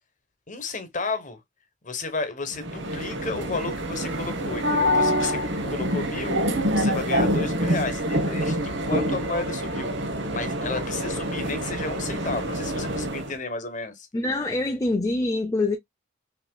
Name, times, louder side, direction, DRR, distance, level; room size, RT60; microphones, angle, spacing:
voice 1, 0.5-1.4 1.8-6.4 6.7-9.9 10.3-14.1, left 3 dB, 40° left, 1.1 m, -32 dB
sound 1, 2.5-13.4, equal, 60° right, 1.0 m, -26 dB
voice 2, 14.1-15.8, left 2 dB, 15° left, 0.6 m, -25 dB
5.9 x 2.9 x 2.2 m
head